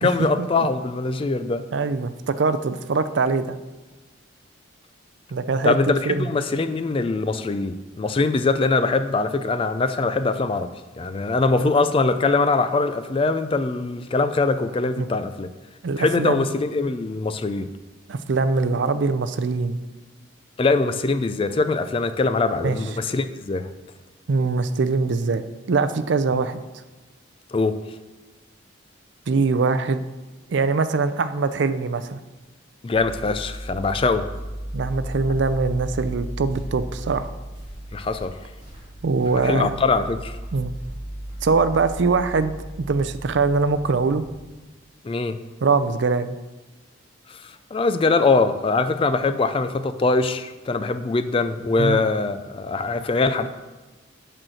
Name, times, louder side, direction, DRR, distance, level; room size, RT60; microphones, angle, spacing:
voice 1, 0.0-1.6 5.6-10.7 11.0-15.5 16.0-17.7 20.6-23.7 27.5-27.8 32.8-34.3 37.9-38.3 39.4-40.4 45.0-45.4 47.3-53.5, left 3 dB, 25° left, 11 dB, 0.3 m, -22 dB
voice 2, 1.7-3.5 5.3-5.7 6.1-6.3 15.0-15.1 15.8-16.4 18.1-19.8 22.5-22.8 24.3-25.4 25.7-26.6 29.3-30.0 30.5-32.2 34.7-37.3 39.0-39.7 40.5-40.7 41.4-42.5 42.8-44.2 45.6-46.3 51.8-52.1, right 4 dB, 65° right, 11 dB, 0.4 m, -22 dB
sound 1, 32.9-44.5, right 1 dB, 25° right, 2.9 m, -35 dB
8.8 x 4.4 x 6.3 m, 1.2 s
head